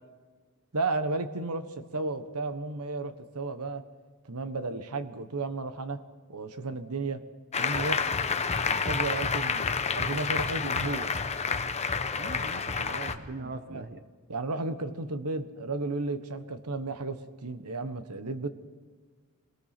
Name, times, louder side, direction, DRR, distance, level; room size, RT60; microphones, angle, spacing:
voice 1, 0.7-3.8 4.2-6.0 6.3-7.2 7.6-8.0 8.7-11.1 13.4-13.8 14.3-18.5, right 3 dB, 85° right, 10 dB, 1.3 m, -33 dB
Applause, 7.5-13.2, left 5 dB, 30° left, 0.9 m, -29 dB
voice 2, 12.2-14.0, right 3 dB, 45° right, 10 dB, 1.0 m, -40 dB
25.5 x 18.5 x 6.0 m, 1.5 s
head